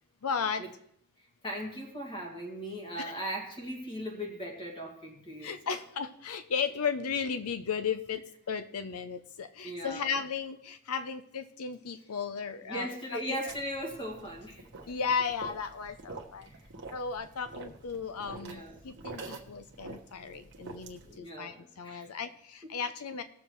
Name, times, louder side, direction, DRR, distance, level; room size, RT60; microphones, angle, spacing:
voice 1, 0.2-0.6 3.0-3.1 5.4-8.2 8.5-13.5 14.9-16.5 16.9-23.2, left 6 dB, 85° left, 10 dB, 0.6 m, -35 dB
voice 2, 1.4-5.7 9.6-10.2 12.6-14.9 16.4-16.6 18.4-18.8 21.1-22.1, equal, 25° left, 0 dB, 2.0 m, -38 dB
sound 1, 13.5-21.2, right 3 dB, 55° right, 1.3 m, -47 dB
19.0 x 7.2 x 3.1 m, 0.69 s
head